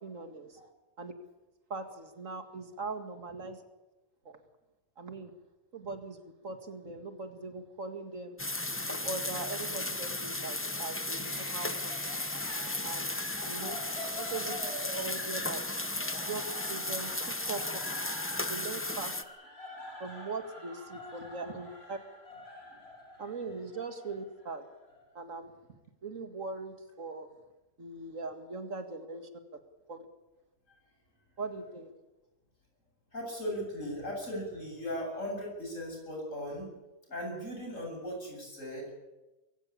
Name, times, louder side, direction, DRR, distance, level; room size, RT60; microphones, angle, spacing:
voice 1, 0.0-0.6 1.0-1.1 1.7-3.6 4.2-4.4 5.0-5.3 5.7-8.4 8.9-12.2 12.8-13.1 13.5-13.8 14.2-14.5 15.0-15.7 16.2-16.4 16.7-17.6 18.5-19.2 20.0-22.0 23.2-24.6 25.1-25.5 26.0-27.3 27.8-29.3 29.9-30.1 31.4-31.9, right 3 dB, 90° right, 8 dB, 2.5 m, -40 dB
sound 1, 8.4-19.2, left 2 dB, 10° left, 0.9 m, -35 dB
sound 2, 11.2-16.7, left 1 dB, 30° left, 6.8 m, -53 dB
sound 3, 11.9-25.0, left 1 dB, 55° left, 4.8 m, -45 dB
voice 2, 33.1-36.7 37.1-38.9, equal, 85° left, 0 dB, 8.5 m, -38 dB
23.0 x 16.0 x 8.5 m, 1.1 s
omnidirectional pair, 1.3 m